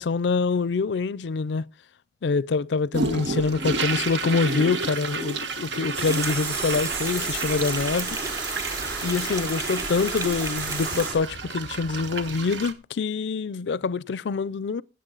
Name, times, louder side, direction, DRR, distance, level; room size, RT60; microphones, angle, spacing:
voice 1, 0.0-1.6 2.2-8.2 9.0-14.8, left 4 dB, 80° left, 0.4 m, -25 dB
sound 1, 2.9-12.7, right 3 dB, 90° right, 1.3 m, -32 dB
sound 2, 5.9-11.2, right 3 dB, 70° right, 4.6 m, -32 dB
sound 3, 6.1-11.1, right 3 dB, 20° right, 0.8 m, -35 dB
15.5 x 7.8 x 3.9 m
head